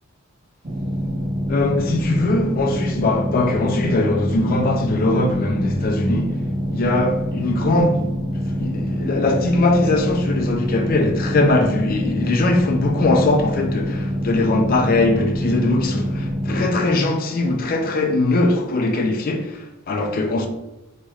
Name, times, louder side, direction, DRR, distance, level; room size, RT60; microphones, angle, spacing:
sound 1, 0.6-16.7, equal, 35° right, 0.7 m, -25 dB
voice 1, 1.5-6.4 6.7-8.1 8.6-20.5, left 2 dB, 45° left, 0.4 m, -20 dB
4.1 x 3.1 x 2.3 m
head